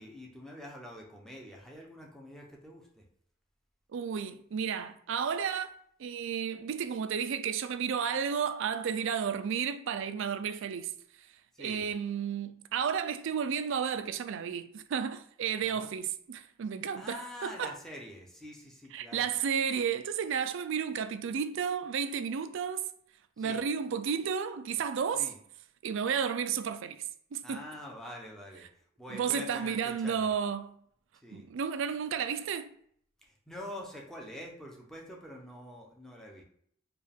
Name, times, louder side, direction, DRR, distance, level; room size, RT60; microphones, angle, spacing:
voice 1, 0.0-3.0 11.5-11.9 15.6-15.9 16.9-19.3 23.4-23.6 25.1-25.4 27.4-28.7 29.0-30.3 31.2-31.5 33.2-36.4, left 1 dB, ahead, 0.7 m, -46 dB
voice 2, 3.9-5.7 6.0-10.9 11.6-17.7 18.9-22.8 23.4-25.3 25.8-27.0 27.3-27.6 29.1-30.8 31.3-32.7, right 7 dB, 65° right, 0.4 m, -32 dB
4.5 x 2.4 x 3.5 m
head